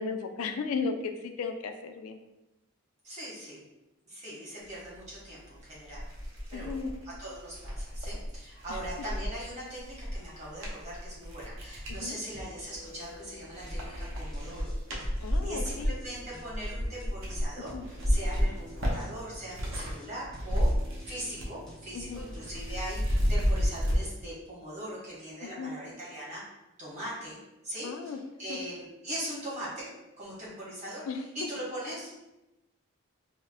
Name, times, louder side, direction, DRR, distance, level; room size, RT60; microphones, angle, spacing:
voice 1, 0.0-2.2 6.5-6.9 12.0-12.2 15.2-15.9 17.7-17.8 21.9-22.2 25.4-25.7 27.8-28.2 28.5-28.6 31.1-31.2, left 5 dB, 80° left, 6 dB, 0.3 m, -35 dB
voice 2, 3.0-3.6 4.1-6.1 6.5-6.8 7.0-14.7 15.2-20.7 21.1-26.5 26.8-27.4 27.6-29.9 30.2-32.4, right 1 dB, 30° right, -7 dB, 1.1 m, -40 dB
sound 1, 5.4-5.5 5.9-12.0 12.6-13.2 13.5-20.0 20.2-21.6 21.9-24.0, equal, 70° right, 0.7 m, -31 dB
sound 2, 12.3-23.0, equal, ahead, 0.5 m, -50 dB
4.4 x 2.0 x 2.3 m, 0.97 s
head